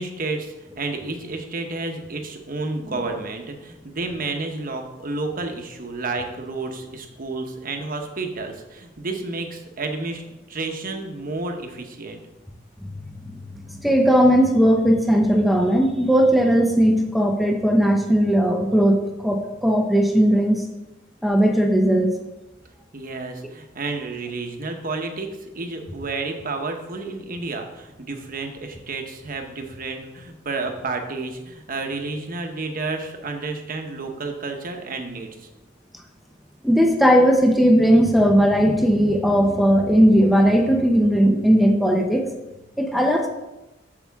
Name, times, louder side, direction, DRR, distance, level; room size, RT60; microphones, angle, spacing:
voice 1, 0.0-10.2 10.5-12.2 22.9-35.5, right 3 dB, 50° right, 4 dB, 1.0 m, -31 dB
voice 2, 12.8-20.7 21.2-22.2 36.6-42.3 42.8-43.3, equal, ahead, 3 dB, 0.7 m, -18 dB
8.4 x 7.0 x 3.6 m, 1.0 s
head